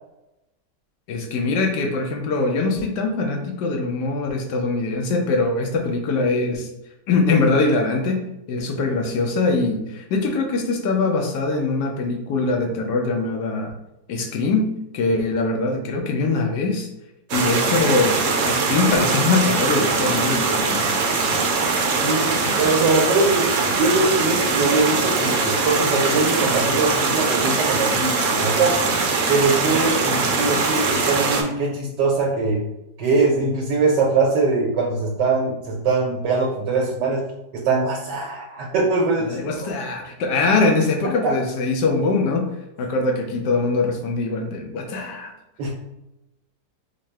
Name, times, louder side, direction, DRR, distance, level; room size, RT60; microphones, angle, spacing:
voice 1, 1.1-6.7 7.1-13.7 14.1-16.9 17.3-20.9 39.2-42.5 42.8-45.3, left 3 dB, 80° left, 3 dB, 1.3 m, -22 dB
sound 1, 17.3-31.4, right 4 dB, 65° right, 0.8 m, -21 dB
voice 2, 21.8-23.5 23.8-28.8 29.3-32.6 33.0-37.3 37.5-39.4 45.6-45.7, right 3 dB, 85° right, -2 dB, 1.4 m, -22 dB
3.7 x 2.0 x 4.3 m, 0.93 s
omnidirectional pair, 1.8 m